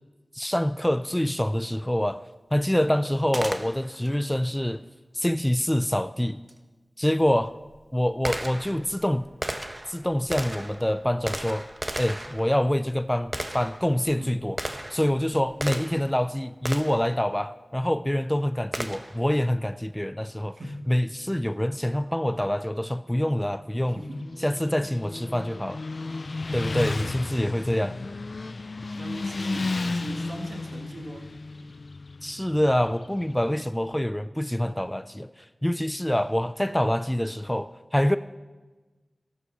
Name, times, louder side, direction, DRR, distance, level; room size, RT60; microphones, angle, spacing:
voice 1, 0.3-2.2 2.5-4.9 5.1-6.4 7.0-7.5 7.9-9.3 9.9-11.7 12.0-14.6 14.9-20.6 20.9-24.0 24.4-25.8 26.5-28.0 32.2-38.2, left 1 dB, 10° left, 0.5 m, -26 dB
Gunshot gunfire, 3.3-4.1 6.5-6.6 7.3-16.2 16.7-17.1 18.7-19.3, right 1 dB, 25° right, 1.1 m, -35 dB
voice 2, 20.5-20.9 23.9-24.3 27.0-27.2 29.0-31.4, right 1 dB, 80° right, 2.1 m, -39 dB
Motorcycle, 23.8-33.6, left 3 dB, 65° left, 0.4 m, -33 dB
14.5 x 12.0 x 6.5 m
wide cardioid pair, 55°, 0 cm